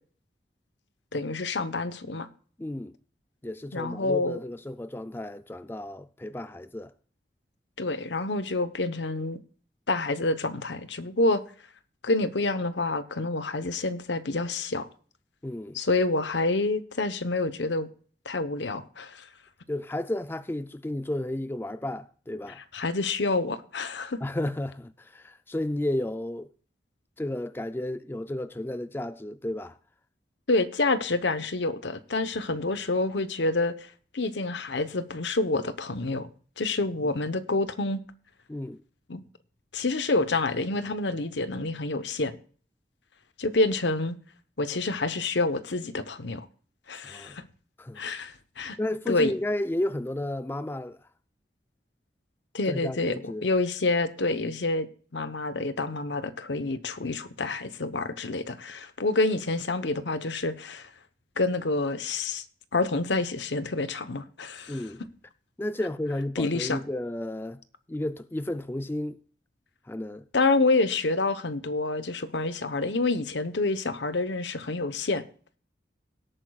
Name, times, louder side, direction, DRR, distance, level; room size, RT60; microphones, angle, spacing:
voice 1, 1.1-2.3 3.7-4.4 7.8-9.4 9.9-11.4 12.0-14.9 15.7-17.9 18.2-19.3 22.7-24.2 30.5-33.9 34.1-36.3 36.6-38.0 39.1-39.2 39.7-42.3 43.4-44.1 44.6-46.5 46.9-47.4 48.0-48.8 49.1-49.3 52.5-54.9 55.1-60.9 61.4-62.4 62.7-64.8 66.4-66.8 70.3-75.2, left 2 dB, 85° left, 0.9 m, -28 dB
voice 2, 2.6-3.0 3.4-6.9 15.4-15.8 19.7-22.6 24.2-26.5 27.2-29.8 38.5-38.8 47.0-47.4 47.8-48.0 48.8-51.0 52.7-53.5 64.7-65.0 65.6-67.6 67.9-69.2 69.9-70.3, left 1 dB, 10° left, 0.3 m, -32 dB
17.5 x 8.9 x 2.4 m
head